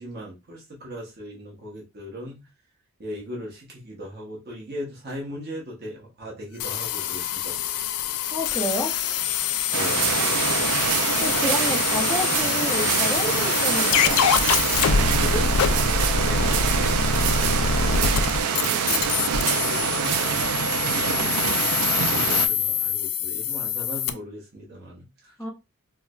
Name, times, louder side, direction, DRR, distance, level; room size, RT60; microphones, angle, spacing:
voice 1, 0.0-2.4 3.0-7.6 8.1-8.2 9.7-10.1 14.9-16.7 18.3-20.5 22.0-25.3, equal, 45° right, 0.9 m, -38 dB
sound 1, 6.6-24.1, left 7 dB, 85° left, 0.4 m, -25 dB
voice 2, 8.3-8.9 11.0-14.2 17.4-18.2 20.9-21.4 25.4-25.5, left 1 dB, 5° left, 0.5 m, -31 dB
sound 2, 9.7-22.5, right 6 dB, 85° right, 0.4 m, -25 dB
4.5 x 2.0 x 2.3 m
head